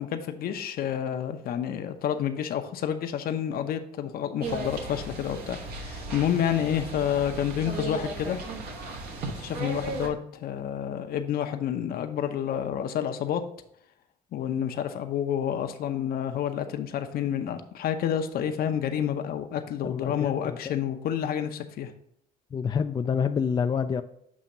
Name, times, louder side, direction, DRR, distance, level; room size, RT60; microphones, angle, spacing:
voice 1, 0.0-8.4 9.3-13.4 14.3-21.9, left 9 dB, 65° left, 8 dB, 0.7 m, -29 dB
sound 1, 4.4-10.1, right 2 dB, 70° right, 1.3 m, -36 dB
voice 2, 19.8-20.7 22.5-24.0, left 6 dB, 25° left, 8 dB, 0.3 m, -27 dB
7.2 x 2.8 x 5.3 m, 0.72 s
cardioid pair, 110°, 17 cm